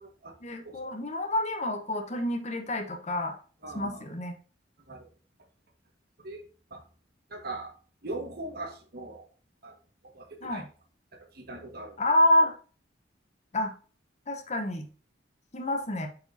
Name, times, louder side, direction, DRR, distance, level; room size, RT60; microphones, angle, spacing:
voice 1, 0.4-3.3 3.7-4.3 10.4-10.7 12.0-12.5 13.5-13.7 14.3-14.8 15.5-16.1, left 1 dB, 35° left, 4 dB, 0.9 m, -27 dB
voice 2, 3.6-4.0 4.9-5.0 6.2-6.4 6.7-6.8 7.3-7.7 8.0-9.3 9.6-9.7 10.1-10.6 11.3-11.9, right 2 dB, 55° right, 3 dB, 1.5 m, -39 dB
8.5 x 4.8 x 2.7 m, 0.39 s
head